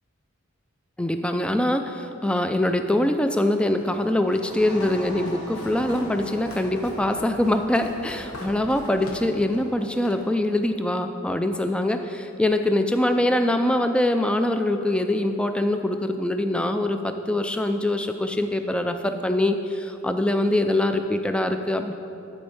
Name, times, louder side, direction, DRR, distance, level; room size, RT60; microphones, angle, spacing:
voice 1, 1.0-21.9, left 1 dB, 5° left, 7 dB, 0.3 m, -23 dB
Walk footsteps, 3.8-10.2, left 1 dB, 90° left, 1.2 m, -41 dB
sound 1, 4.2-11.6, equal, 65° left, 2.2 m, -43 dB
12.0 x 4.3 x 5.5 m, 3.0 s
head